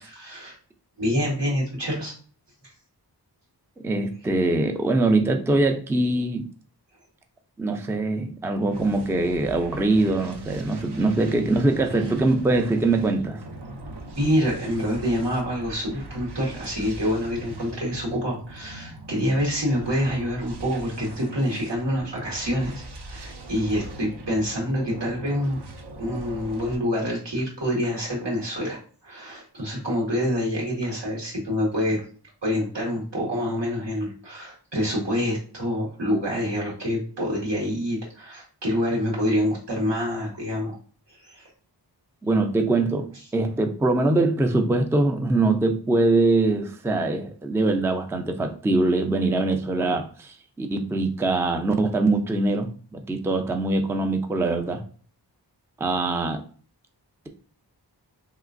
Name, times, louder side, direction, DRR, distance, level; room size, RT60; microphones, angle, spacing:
voice 1, 0.2-0.5 1.0-2.1 14.1-25.6 26.0-32.0 32.4-40.8 41.1-41.5, equal, 90° right, -4 dB, 1.6 m, -26 dB
voice 2, 3.8-6.4 7.6-13.4 42.2-54.8 55.8-56.4, right 2 dB, 5° right, 5 dB, 0.3 m, -23 dB
sound 1, 8.7-26.8, right 1 dB, 70° right, 0.6 m, -40 dB
3.2 x 2.9 x 2.5 m, 0.42 s
wide cardioid pair, 70°, 41 cm